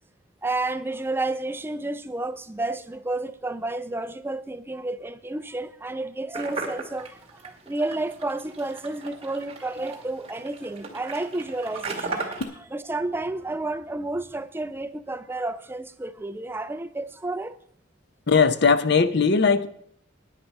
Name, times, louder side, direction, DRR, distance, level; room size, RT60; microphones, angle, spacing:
voice 1, 0.4-12.4 12.7-17.6, right 2 dB, 10° right, 0.4 m, -31 dB
sound 1, 6.3-12.4, right 3 dB, 30° right, 2.0 m, -36 dB
voice 2, 18.3-19.7, left 5 dB, 55° left, 0.7 m, -19 dB
10.5 x 10.0 x 5.3 m
head